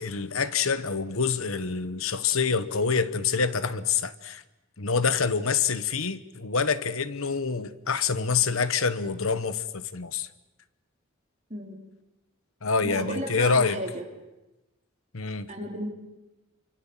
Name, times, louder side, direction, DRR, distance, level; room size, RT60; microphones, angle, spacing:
voice 1, 0.0-4.4 4.8-10.3 12.6-13.8 15.1-15.5, left 5 dB, 80° left, 1.2 m, -26 dB
voice 2, 12.8-14.0 15.5-15.9, right 1 dB, 35° right, 4.6 m, -33 dB
29.0 x 25.0 x 7.5 m
head